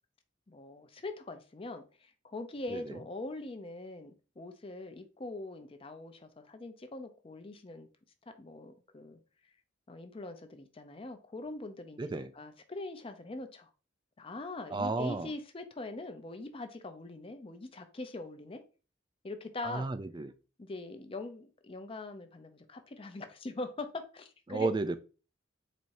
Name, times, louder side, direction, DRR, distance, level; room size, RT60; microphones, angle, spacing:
voice 1, 0.5-1.8 2.2-7.9 8.4-9.2 9.9-12.0 12.3-13.7 14.2-18.6 19.2-19.9 20.6-24.7, left 2 dB, 30° left, 0.6 m, -42 dB
voice 2, 12.0-12.3 14.7-15.3 19.6-20.3 24.5-25.0, right 3 dB, 25° right, 0.4 m, -33 dB
4.2 x 2.7 x 4.6 m
head